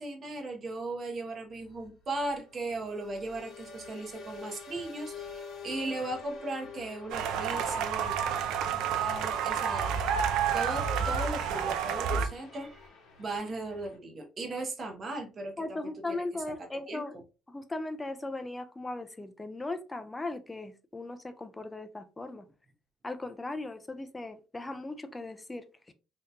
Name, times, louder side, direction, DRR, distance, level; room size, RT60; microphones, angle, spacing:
voice 1, 0.0-8.1 9.0-9.9 10.5-12.9 13.2-17.0, right 2 dB, 35° right, 0.8 m, -37 dB
sound 1, 1.5-14.0, left 5 dB, 70° left, 0.9 m, -47 dB
sound 2, 7.1-12.3, right 7 dB, 80° right, 0.4 m, -29 dB
voice 2, 15.6-17.2 17.5-22.4 23.0-25.9, left 2 dB, 15° left, 0.4 m, -38 dB
3.6 x 2.8 x 2.2 m
cardioid pair, 140°, 0 cm